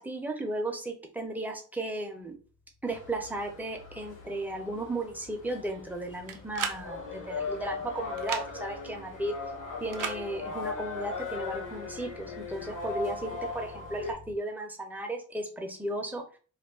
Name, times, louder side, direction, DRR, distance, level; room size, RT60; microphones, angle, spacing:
voice 1, 0.0-2.4 2.8-9.4 9.8-16.2, right 2 dB, 5° right, 2 dB, 0.5 m, -35 dB
sound 1, 2.2-14.4, left 2 dB, 50° left, 0.6 m, -54 dB
sound 2, 2.9-14.1, left 4 dB, 75° left, 1.0 m, -39 dB
sound 3, 6.3-6.8 8.2-8.5 9.9-10.2, right 7 dB, 85° right, 0.5 m, -34 dB
2.4 x 2.1 x 3.6 m, 0.38 s
wide cardioid pair, 130°, 31 cm